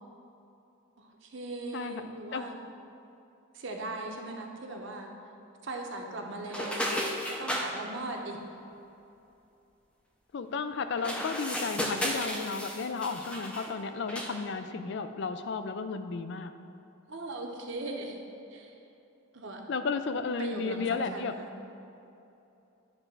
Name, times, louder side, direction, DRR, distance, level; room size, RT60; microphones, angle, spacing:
voice 1, 1.0-2.6 3.5-5.1 5.6-6.9 7.3-8.4 17.1-18.2 18.5-18.7 19.3-19.6 20.4-21.5, right 2 dB, 60° right, 2 dB, 0.8 m, -39 dB
voice 2, 1.7-2.0 2.3-2.4 10.3-16.5 19.7-21.3, left 4 dB, 55° left, 9 dB, 0.4 m, -33 dB
sound 1, 6.5-7.7 10.9-13.7 14.1-14.4, equal, 5° left, 0.5 m, -34 dB
9.7 x 3.3 x 6.0 m, 2.8 s
head